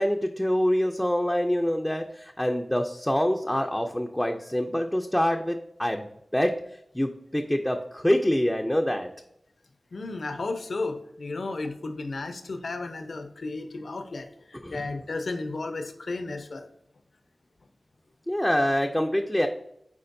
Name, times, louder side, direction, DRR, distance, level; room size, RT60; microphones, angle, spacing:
voice 1, 0.0-6.5 6.9-9.1 14.6-14.8 18.3-19.5, equal, 10° left, 3 dB, 0.5 m, -25 dB
voice 2, 9.9-16.7, left 3 dB, 80° left, 7 dB, 0.7 m, -33 dB
8.5 x 4.5 x 2.6 m, 0.75 s
wide cardioid pair, 80°, 0 cm